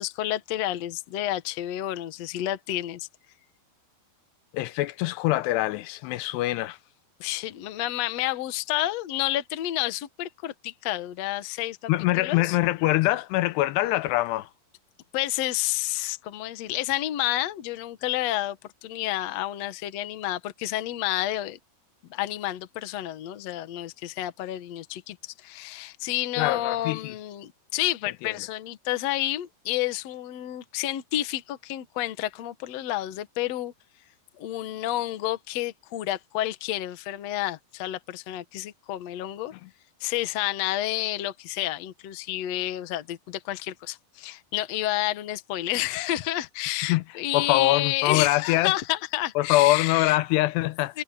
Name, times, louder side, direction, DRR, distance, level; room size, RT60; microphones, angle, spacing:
voice 1, 0.0-3.1 7.2-11.9 12.2-12.6 15.1-18.6 18.8-21.6 22.1-33.7 34.4-39.5 40.0-50.2 50.9-51.0, left 14 dB, 65° left, 1.7 m, -30 dB
voice 2, 4.5-6.8 11.9-14.5 26.4-27.1 28.2-28.3 39.6-39.7 46.9-47.0 47.3-48.7 49.4-51.0, left 17 dB, 85° left, 2.8 m, -24 dB
omnidirectional pair, 4.8 m